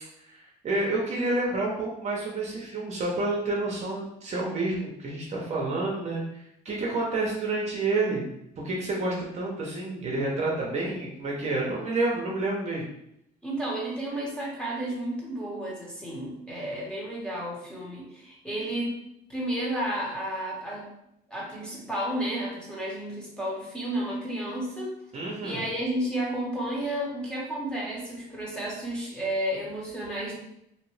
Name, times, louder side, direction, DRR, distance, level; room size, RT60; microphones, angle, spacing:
voice 1, 0.3-6.2 6.6-8.3 8.6-12.9 25.1-25.6, right 2 dB, 40° right, -3 dB, 0.8 m, -29 dB
voice 2, 13.4-18.9 19.3-20.9 21.3-24.9 25.4-30.3, right 1 dB, 5° left, -5 dB, 1.1 m, -32 dB
2.8 x 2.5 x 3.2 m, 0.79 s
cardioid pair, 110°, 17 cm